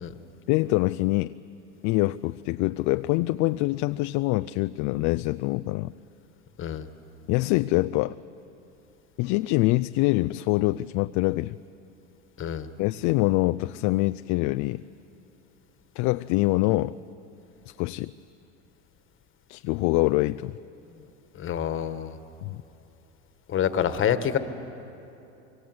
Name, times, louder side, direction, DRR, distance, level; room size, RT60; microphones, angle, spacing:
voice 1, 0.5-1.3 1.8-5.9 7.3-8.2 9.2-11.6 12.8-14.8 16.0-17.0 17.7-18.1 19.5-20.6 22.4-22.6, left 20 dB, 50° left, 12 dB, 0.5 m, -25 dB
voice 2, 21.3-22.2 23.5-24.4, left 9 dB, 35° left, 10 dB, 1.6 m, -27 dB
26.0 x 23.0 x 7.9 m, 3.0 s
hypercardioid pair, 100°, 36 cm